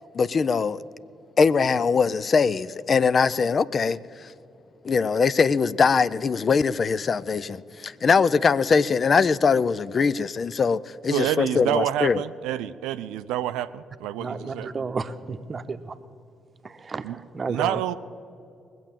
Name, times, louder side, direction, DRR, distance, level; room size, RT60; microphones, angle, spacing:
voice 1, 0.1-0.8 1.4-4.0 4.8-12.2, left 5 dB, 45° left, 0.4 m, -22 dB
voice 2, 11.1-14.7 17.0-17.2 17.5-17.9, right 12 dB, 75° right, 0.4 m, -28 dB
voice 3, 14.2-15.9 16.6-17.8, right 4 dB, 40° right, 0.9 m, -32 dB
20.5 x 7.6 x 7.3 m
hypercardioid pair, 45°, 0 cm